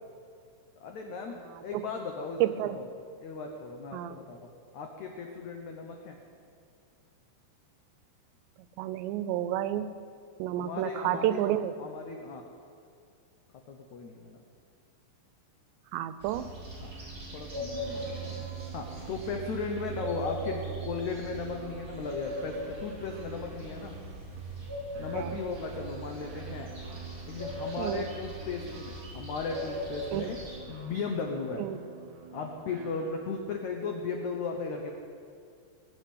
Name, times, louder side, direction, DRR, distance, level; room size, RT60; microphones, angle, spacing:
voice 1, 0.8-2.9 3.2-4.4 4.7-6.2 10.6-11.4 11.8-12.4 13.7-14.4 16.8-16.9 17.3-18.5 18.7-24.0 25.0-26.7 27.3-30.4 30.7-31.6 32.3-34.9, left 4 dB, 85° left, 3 dB, 1.6 m, -36 dB
voice 2, 2.4-2.8 3.9-4.2 8.8-9.9 10.4-11.8 15.9-16.5 25.1-25.4 27.8-28.1 30.1-30.3 31.6-31.8, right 12 dB, 90° right, 13 dB, 2.9 m, -30 dB
sound 1, 16.2-30.6, right 1 dB, 20° right, 4.2 m, -39 dB
sound 2, 16.7-33.5, right 5 dB, 60° right, 2.3 m, -50 dB
21.0 x 8.0 x 8.5 m, 2.3 s
omnidirectional pair, 4.9 m